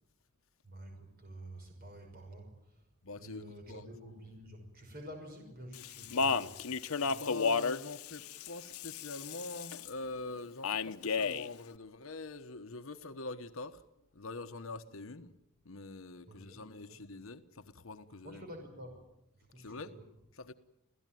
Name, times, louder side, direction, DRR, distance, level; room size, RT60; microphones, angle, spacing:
voice 1, 0.6-2.9 3.2-6.6 16.3-17.0 18.2-19.0 19.3-20.1, equal, 45° right, 5.8 m, -49 dB
voice 2, 3.0-3.9 7.0-13.8 14.1-15.3 15.6-18.5 19.6-20.0 20.3-20.5, left 3 dB, 70° left, 1.1 m, -44 dB
Speech, 5.7-9.9 10.6-11.5, left 5 dB, 90° left, 0.8 m, -33 dB
26.5 x 16.5 x 9.2 m
head